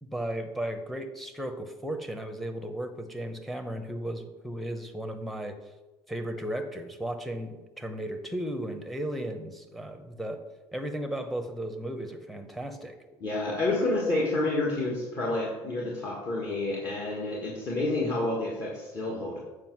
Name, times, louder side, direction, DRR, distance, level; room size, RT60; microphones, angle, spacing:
voice 1, 0.0-5.6 6.1-10.4 10.7-13.0, right 1 dB, ahead, 6 dB, 0.8 m, -35 dB
voice 2, 13.2-19.4, left 2 dB, 40° left, -3 dB, 1.7 m, -29 dB
7.6 x 4.9 x 6.1 m, 1.1 s
cardioid pair, 140°, 9 cm